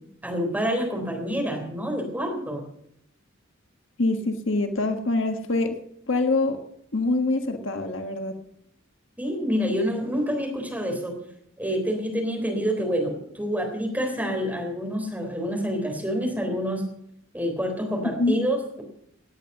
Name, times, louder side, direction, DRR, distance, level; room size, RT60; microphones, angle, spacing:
voice 1, 0.2-2.6 9.2-11.2 11.6-16.8 17.3-18.8, equal, 10° right, 2 dB, 3.7 m, -27 dB
voice 2, 4.0-5.8 6.1-6.6 6.9-8.3 18.0-18.4, left 2 dB, 65° left, 6 dB, 1.5 m, -25 dB
18.0 x 9.2 x 6.7 m, 0.71 s
head